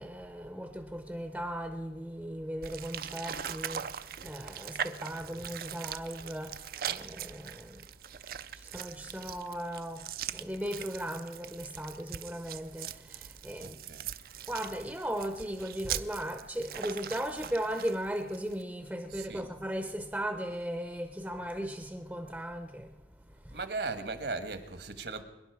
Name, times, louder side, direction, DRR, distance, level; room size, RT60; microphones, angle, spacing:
voice 1, 0.0-7.9 8.5-13.8 14.5-23.6, equal, 5° right, 0.7 m, -37 dB
sound 1, 2.6-18.6, right 9 dB, 55° right, 0.5 m, -41 dB
voice 2, 13.6-14.1 19.1-19.4 23.5-25.2, right 3 dB, 75° right, 1.4 m, -37 dB
24.0 x 11.0 x 4.7 m
head